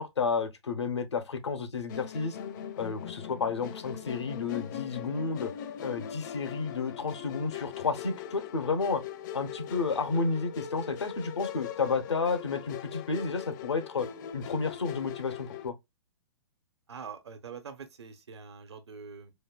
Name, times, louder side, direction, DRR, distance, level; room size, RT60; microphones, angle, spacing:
voice 1, 0.0-2.4 2.8-5.5 5.8-9.0 9.3-14.1 14.3-15.7, left 4 dB, 85° left, 0.9 m, -31 dB
Musical instrument, 1.9-15.7, left 9 dB, 45° left, 0.6 m, -41 dB
voice 2, 16.9-19.3, right 6 dB, 80° right, 1.0 m, -44 dB
4.4 x 2.8 x 2.2 m
hypercardioid pair, 120°, 14 cm